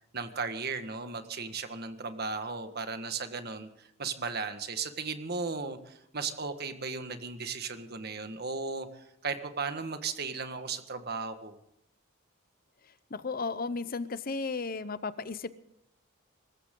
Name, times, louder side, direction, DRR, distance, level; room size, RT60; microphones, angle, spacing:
voice 1, 0.1-11.5, right 4 dB, 50° right, 8 dB, 1.6 m, -36 dB
voice 2, 13.1-15.6, left 4 dB, 45° left, 15 dB, 0.7 m, -34 dB
24.5 x 14.0 x 3.8 m, 0.75 s
head